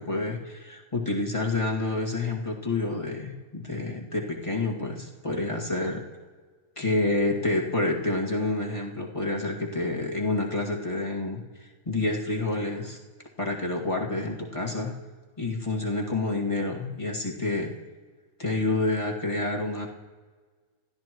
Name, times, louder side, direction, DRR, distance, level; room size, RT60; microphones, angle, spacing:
voice 1, 0.0-6.0 6.8-13.0 13.4-14.9 15.4-17.7 18.4-19.9, left 2 dB, 15° left, -2 dB, 1.8 m, -28 dB
29.0 x 13.5 x 3.1 m, 1.4 s
omnidirectional pair, 2.4 m